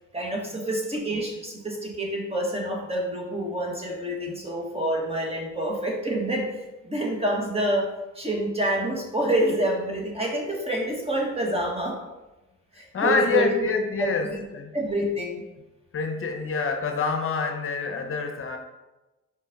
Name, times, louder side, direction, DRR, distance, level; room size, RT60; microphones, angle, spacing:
voice 1, 0.1-6.4 6.8-7.9 8.1-12.0 12.7-13.5 14.0-14.1 14.7-15.4, right 1 dB, 20° right, -1 dB, 1.5 m, -27 dB
voice 2, 12.9-14.7 15.9-18.6, left 5 dB, 45° left, 4 dB, 0.8 m, -26 dB
5.4 x 5.0 x 3.8 m, 1.1 s
cardioid pair, 90°, 30 cm